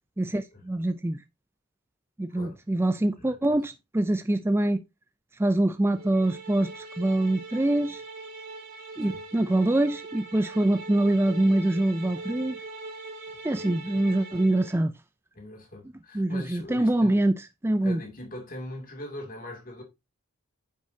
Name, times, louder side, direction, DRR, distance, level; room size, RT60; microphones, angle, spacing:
voice 1, 0.2-1.2 2.2-4.8 5.4-8.0 9.0-12.6 13.4-14.9 16.1-17.4 17.6-18.0, right 1 dB, 10° right, 0.4 m, -24 dB
voice 2, 3.2-3.6 9.0-9.2 13.3-14.0 15.3-17.2 17.8-19.8, left 1 dB, 40° left, 2.6 m, -41 dB
sound 1, 5.9-14.8, right 3 dB, 40° right, 4.5 m, -42 dB
9.5 x 7.3 x 2.8 m
head